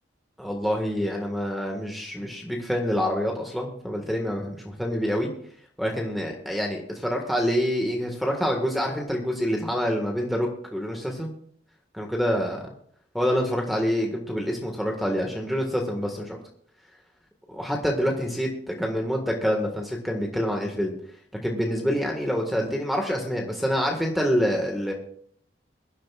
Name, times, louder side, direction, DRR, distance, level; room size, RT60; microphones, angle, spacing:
voice 1, 0.4-5.3 5.8-11.3 11.9-12.6 13.1-16.4 17.5-20.9 21.4-24.9, equal, ahead, 1 dB, 1.7 m, -26 dB
23.0 x 12.0 x 2.4 m, 0.62 s
head